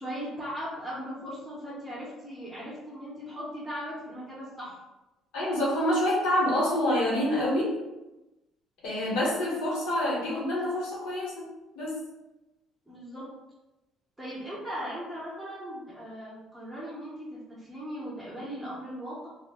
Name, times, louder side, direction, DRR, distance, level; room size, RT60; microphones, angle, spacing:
voice 1, 0.0-4.8 12.9-13.2 14.2-19.3, equal, 5° right, -8 dB, 0.7 m, -38 dB
voice 2, 5.3-7.7 8.8-11.4 11.7-11.9, left 1 dB, 85° left, -5 dB, 1.2 m, -27 dB
2.3 x 2.1 x 3.5 m, 1.0 s
cardioid pair, 140°, 0 cm